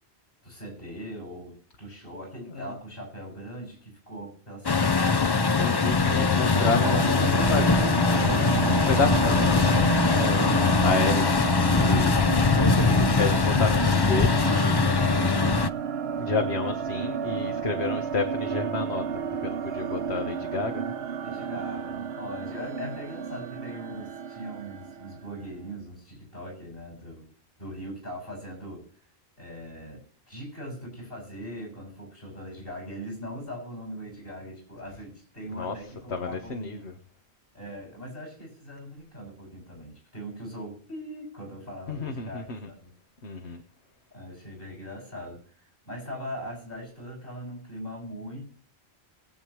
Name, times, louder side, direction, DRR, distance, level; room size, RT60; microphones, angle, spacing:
voice 1, 0.4-5.4 21.2-27.3 27.6-28.8 29.4-36.9 37.5-42.9 44.1-45.4 45.8-48.5, equal, 60° left, 1 dB, 7.5 m, -40 dB
Truck, 4.6-15.7, left 4 dB, 30° left, 0.5 m, -22 dB
voice 2, 5.6-12.2 12.5-14.8 16.2-19.1 19.3-20.9 35.5-35.7 36.1-36.9 41.9-42.7 43.2-43.6, left 4 dB, 80° left, 5 dB, 1.6 m, -31 dB
sound 1, 6.5-25.5, right 7 dB, 70° right, 0.9 m, -31 dB
22.0 x 8.6 x 3.1 m, 0.42 s
omnidirectional pair, 1.1 m